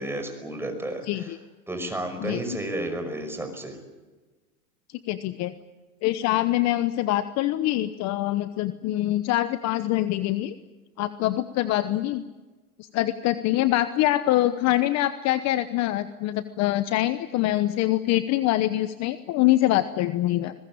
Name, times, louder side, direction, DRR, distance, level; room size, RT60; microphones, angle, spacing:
voice 1, 0.0-1.3 1.7-3.8, right 1 dB, 5° right, 5 dB, 5.5 m, -32 dB
voice 2, 5.1-5.6 6.0-10.6 11.0-12.2 12.9-20.5, left 15 dB, 35° left, 12 dB, 1.0 m, -24 dB
22.5 x 21.0 x 8.8 m, 1.2 s
supercardioid pair, 125°, 45 cm